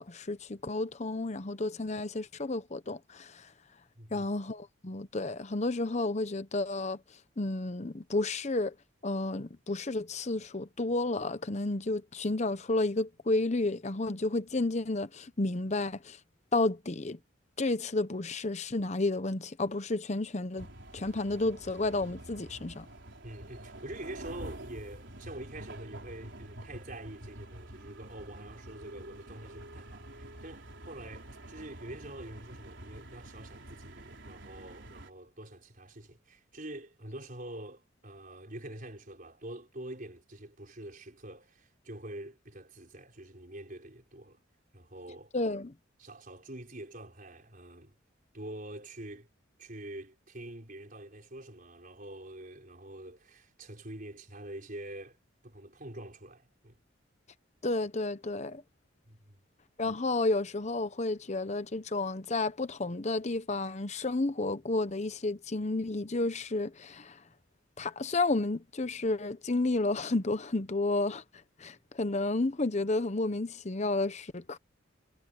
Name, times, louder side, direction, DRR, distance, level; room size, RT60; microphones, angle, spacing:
voice 1, 0.0-3.5 4.1-7.0 7.4-8.7 9.0-16.2 16.5-17.2 17.6-20.7 20.9-22.9 45.3-45.7 57.6-58.6 59.8-67.2 67.8-71.2 71.6-74.6, left 2 dB, 35° left, 0.9 m, -31 dB
voice 2, 4.0-4.3 23.2-44.4 44.7-45.3 46.0-48.0 48.3-49.3 49.6-55.2 55.4-56.8 59.1-59.4, right 1 dB, 45° right, 5.2 m, -46 dB
sound 1, 20.6-35.1, right 1 dB, 70° right, 4.5 m, -47 dB
head